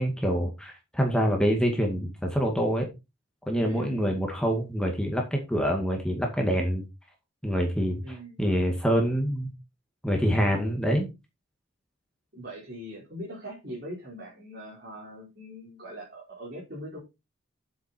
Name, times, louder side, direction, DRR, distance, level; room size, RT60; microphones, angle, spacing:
voice 1, 0.0-2.9 3.5-6.8 7.4-8.0 8.4-9.5 10.0-11.1, equal, 5° left, 2 dB, 2.0 m, -26 dB
voice 2, 3.6-4.1 8.0-8.4 10.4-10.7 12.3-17.0, equal, 50° right, -4 dB, 4.7 m, -41 dB
9.3 x 7.7 x 4.5 m, 0.25 s
head